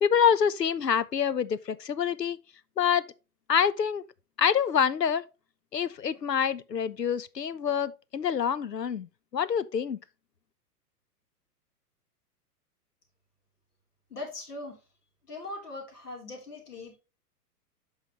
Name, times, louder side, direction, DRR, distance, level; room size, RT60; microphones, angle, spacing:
voice 1, 0.0-2.4 2.8-3.1 3.5-4.0 4.4-5.3 5.7-10.0, left 7 dB, 90° left, 0.7 m, -26 dB
voice 2, 14.1-14.8 15.3-17.0, left 2 dB, 70° left, 3.4 m, -40 dB
8.0 x 5.7 x 3.0 m
figure-of-eight pair, 105°, 47 cm